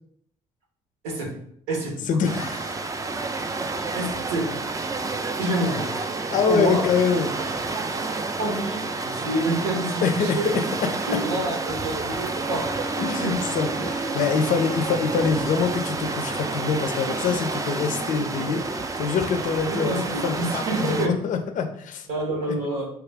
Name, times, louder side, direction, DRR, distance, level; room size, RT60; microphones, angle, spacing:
voice 1, 1.0-1.3 1.7-2.2 3.9-4.6 5.3-5.9 6.5-6.9 8.4-10.6 11.1-12.7 13.2-13.5 13.7-14.1 19.6-21.2 22.1-22.9, right 1 dB, 85° right, 0 dB, 0.8 m, -28 dB
voice 2, 2.1-2.9 6.3-7.4 10.0-10.4 13.0-22.1, left 5 dB, 55° left, 7 dB, 0.4 m, -25 dB
sound 1, 2.3-21.1, right 3 dB, 20° right, 0.4 m, -30 dB
Wind instrument woodwind instrument, 12.2-17.0, right 2 dB, 50° right, 0.7 m, -36 dB
3.2 x 2.4 x 3.3 m, 0.68 s
supercardioid pair, 60°, 16 cm